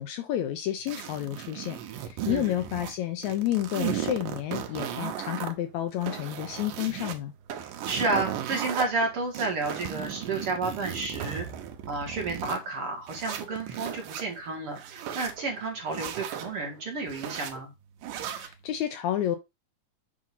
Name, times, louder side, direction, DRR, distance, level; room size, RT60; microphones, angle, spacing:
voice 1, 0.0-7.3 18.3-19.4, left 12 dB, 75° left, 1.8 m, -30 dB
sound 1, 0.9-3.0 3.2-5.5 5.9-7.2 7.6-8.8 9.3-12.6 13.1-14.2 14.7-15.4 15.9-16.5 17.1-17.5 18.0-18.5, right 10 dB, 90° right, 2.6 m, -36 dB
Fireworks, 4.1-10.5 11.2-12.1 12.7-12.9 13.5-17.6, right 9 dB, 75° right, 1.6 m, -44 dB
voice 2, 7.9-11.5 11.9-17.7, right 3 dB, 50° right, 2.1 m, -31 dB
7.6 x 2.7 x 5.7 m
omnidirectional pair, 3.7 m